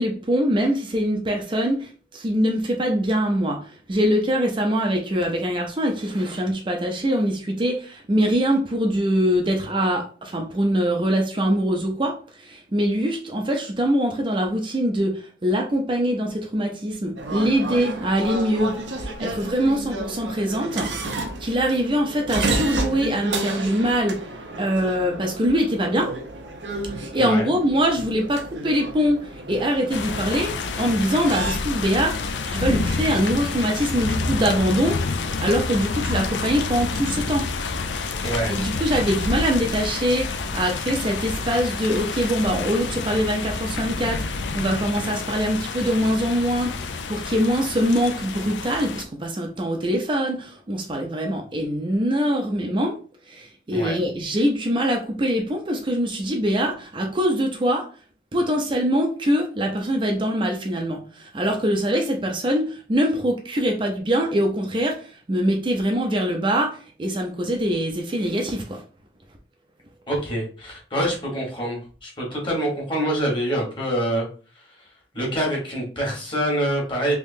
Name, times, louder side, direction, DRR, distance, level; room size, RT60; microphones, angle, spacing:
voice 1, 0.0-21.1 21.4-24.2 24.6-26.1 26.9-35.0 35.4-37.5 38.5-53.0 53.3-57.9 58.3-68.8, equal, 30° right, 2 dB, 0.5 m, -23 dB
sound 1, 17.2-31.5, right 2 dB, 85° right, 0.7 m, -31 dB
voice 2, 27.1-27.5 38.2-38.6 53.7-53.9 70.1-74.3 75.1-77.1, right 1 dB, 30° left, -2 dB, 1.4 m, -25 dB
sound 2, 29.9-49.0, left 4 dB, 80° left, 0.4 m, -28 dB
3.6 x 2.9 x 2.7 m, 0.39 s
head